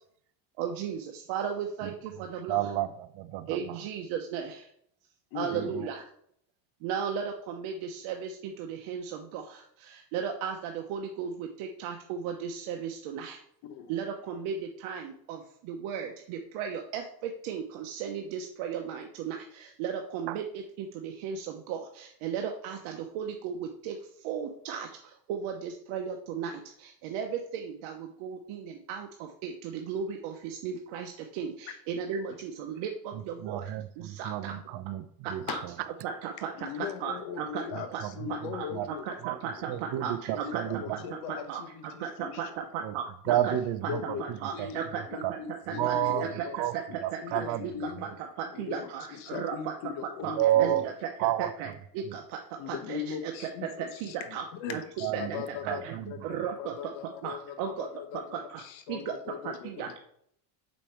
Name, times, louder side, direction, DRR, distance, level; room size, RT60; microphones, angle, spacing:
voice 1, 0.6-2.7 3.5-4.7 5.3-6.1 6.8-13.4 13.9-34.5 35.2-35.6 36.0-37.6 37.9-38.0 38.3-43.5 43.8-43.9 44.2-47.7 48.0-48.1 48.4-49.7 50.2-54.8 55.1-55.4 55.6-55.9 56.2-56.9 57.2-57.9 58.1-58.6 58.9-59.2 59.4-59.9, right 7 dB, 75° right, 3 dB, 1.0 m, -36 dB
voice 2, 2.5-3.6 5.5-5.9 20.3-20.4 33.4-35.0 35.3-35.4 38.7-38.9 39.2-39.4 39.7-41.0 42.8-42.9 43.3-44.2 44.6-44.7 45.2-45.3 45.7-46.2 46.6-46.7 47.0-47.6 50.4-50.8 51.2-51.5 55.0-55.3 55.7-56.0, right 13 dB, 55° right, 11 dB, 0.7 m, -30 dB
voice 3, 5.3-5.9 13.6-13.9 35.4-35.6 36.6-39.1 39.6-39.8 40.3-42.5 43.3-44.2 44.5-46.6 46.9-48.1 48.5-50.9 52.6-56.2 56.4-60.0, left 8 dB, 65° left, 8 dB, 1.2 m, -40 dB
6.4 x 5.3 x 4.4 m, 0.68 s
cardioid pair, 130°, 50 cm